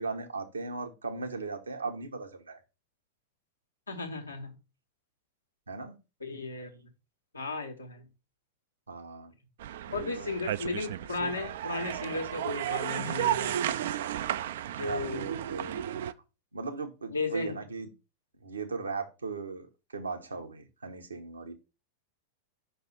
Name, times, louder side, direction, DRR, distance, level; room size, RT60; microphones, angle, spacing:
voice 1, 0.0-2.6 5.7-6.0 8.9-9.3 9.9-10.3 14.7-16.1 16.5-17.9 18.4-19.7 19.9-21.5, right 4 dB, 75° right, 1.0 m, -38 dB
voice 2, 3.9-4.6 6.2-6.9 7.3-8.1 9.9-13.8 14.7-15.2 17.1-17.6, left 3 dB, 80° left, 1.3 m, -35 dB
sound 1, 9.6-16.1, right 11 dB, 60° right, 0.3 m, -33 dB
5.5 x 3.3 x 5.7 m
figure-of-eight pair, 95°, 0 cm